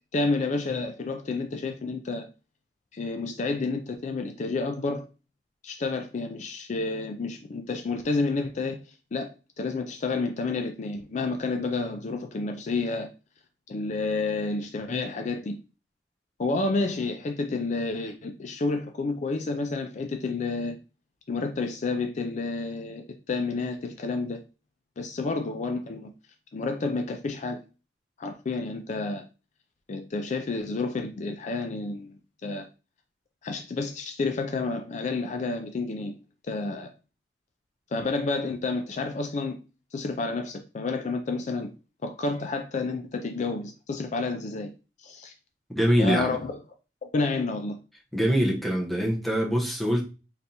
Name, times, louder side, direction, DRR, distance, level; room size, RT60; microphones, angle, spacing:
voice 1, 0.1-2.3 2.9-5.0 5.6-8.8 9.1-9.3 9.6-13.1 13.7-15.6 16.4-20.8 21.3-24.4 25.0-26.1 26.5-27.6 28.2-29.2 29.9-32.1 32.4-32.7 33.4-36.2 36.5-36.9 37.9-39.6 39.9-41.7 42.0-44.7 45.0-45.3 46.0-46.5 47.0-47.8, left 3 dB, 45° left, 0.4 m, -30 dB
voice 2, 45.7-46.4 48.1-50.0, equal, ahead, 0.9 m, -24 dB
4.0 x 3.3 x 2.8 m
head